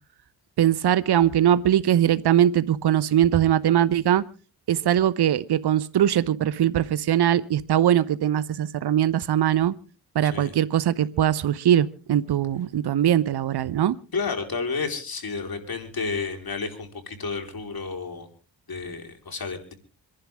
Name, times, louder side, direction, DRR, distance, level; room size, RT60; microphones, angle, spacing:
voice 1, 0.6-4.2 4.7-9.7 10.1-14.0, right 11 dB, 60° right, 1.0 m, -21 dB
voice 2, 10.2-10.5 14.1-18.3 18.7-19.7, left 4 dB, 55° left, 4.5 m, -31 dB
26.0 x 11.5 x 3.6 m
supercardioid pair, 45°, 44 cm